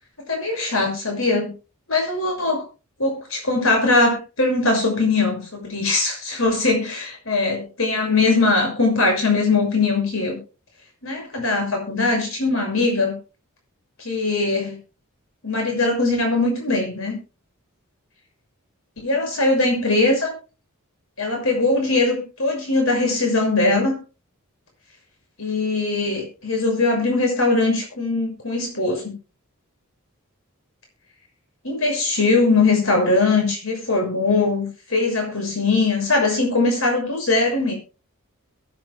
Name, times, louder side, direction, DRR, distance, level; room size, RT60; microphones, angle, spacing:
voice 1, 0.3-1.5 1.9-2.6 3.0-10.4 11.0-13.1 14.0-14.8 15.4-17.2 19.0-20.3 21.2-24.0 25.4-29.1 31.6-37.8, left 3 dB, 65° left, 2 dB, 6.4 m, -21 dB
22.5 x 9.5 x 2.2 m, 0.32 s
head